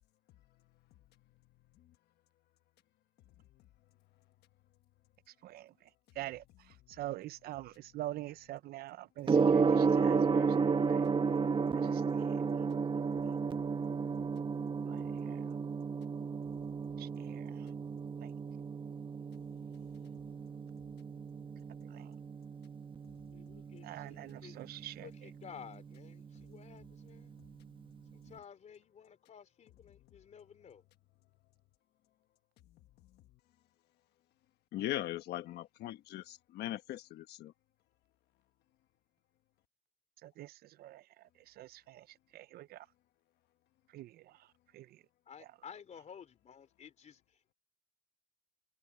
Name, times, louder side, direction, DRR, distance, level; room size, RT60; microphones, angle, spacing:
voice 1, 7.0-10.5 10.8-11.0 11.9-12.4 12.9-13.0 14.9-15.4 17.0-17.5 22.0-22.1 23.8-25.1 40.2-40.5 40.8-41.0 41.6-42.0 42.3-42.8 43.9-44.1 44.7-44.9, right 15 dB, 65° right, 0.5 m, -44 dB
Gong, 9.2-28.3, right 5 dB, 30° right, 1.4 m, -33 dB
voice 2, 23.3-24.6 25.0-27.4 28.1-30.8 45.3-47.5, left 7 dB, 45° left, 3.7 m, -53 dB
voice 3, 34.7-37.5, left 14 dB, 75° left, 1.2 m, -39 dB
cardioid pair, 110°, 17 cm